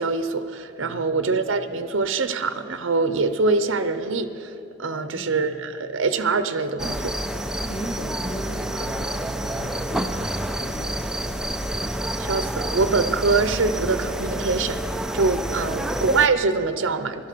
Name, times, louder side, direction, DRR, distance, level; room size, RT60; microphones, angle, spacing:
voice 1, 0.0-4.5 4.8-7.2 12.2-14.8 15.1-17.3, right 4 dB, 75° right, 11 dB, 0.7 m, -24 dB
voice 2, 0.8-1.3 4.9-5.4 7.6-11.3 15.5-15.9, equal, 75° left, -2 dB, 1.8 m, -38 dB
sound 1, 6.8-16.3, right 1 dB, 5° right, 0.4 m, -28 dB
16.0 x 12.5 x 6.7 m, 2.7 s
head